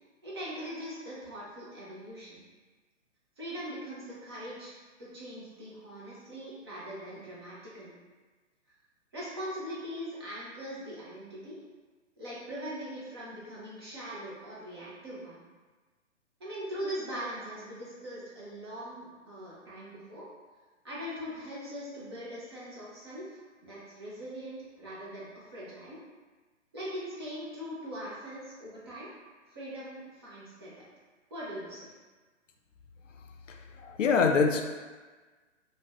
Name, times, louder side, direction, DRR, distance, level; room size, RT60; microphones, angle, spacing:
voice 1, 0.2-2.4 3.4-4.7 5.0-7.9 9.1-11.6 12.2-15.4 16.4-20.2 20.8-26.0 26.7-29.1 29.5-30.8 31.3-31.9, equal, 25° right, -7 dB, 0.4 m, -41 dB
voice 2, 33.8-34.6, left 5 dB, 85° left, 4 dB, 0.5 m, -24 dB
2.4 x 2.0 x 3.3 m, 1.3 s
figure-of-eight pair, 125°, 37 cm